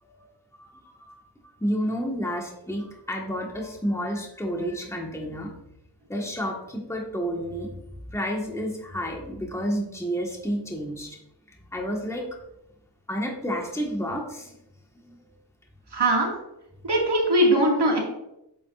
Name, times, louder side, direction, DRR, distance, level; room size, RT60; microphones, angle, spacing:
voice 1, 0.6-5.5 6.1-7.7 8.1-11.2 11.7-12.4 13.1-14.5 15.0-15.2, equal, 5° left, 0 dB, 1.5 m, -30 dB
voice 2, 15.9-16.3 16.8-18.0, right 1 dB, 65° right, 0 dB, 2.1 m, -20 dB
9.0 x 7.2 x 2.5 m, 0.85 s
wide cardioid pair, 65°, 43 cm